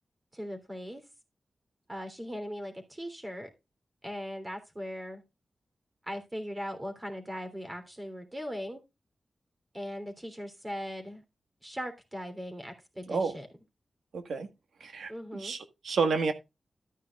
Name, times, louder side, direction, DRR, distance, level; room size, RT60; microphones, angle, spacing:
voice 1, 0.3-1.0 1.9-3.5 4.0-5.2 6.1-8.8 9.7-11.2 11.6-13.5 15.1-15.5, equal, 20° right, 3.2 m, -39 dB
voice 2, 14.1-14.5 14.8-16.3, right 4 dB, 90° right, 1.6 m, -30 dB
13.0 x 9.7 x 2.4 m
wide cardioid pair, 85°, 0 cm